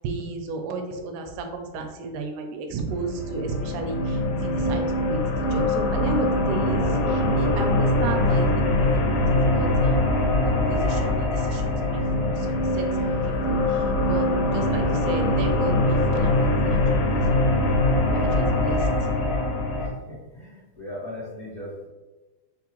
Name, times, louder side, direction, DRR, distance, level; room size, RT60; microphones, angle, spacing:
voice 1, 0.0-10.1 10.4-14.3 14.5-17.6 18.1-19.1, right 3 dB, 85° right, 4 dB, 2.0 m, -34 dB
sound 1, 2.9-19.9, left 1 dB, 85° left, 2.2 m, -23 dB
voice 2, 12.9-13.6 14.7-14.9 18.8-19.2 19.8-21.9, left 1 dB, 70° left, -10 dB, 0.6 m, -40 dB
5.3 x 2.1 x 2.9 m, 1.2 s
omnidirectional pair, 3.6 m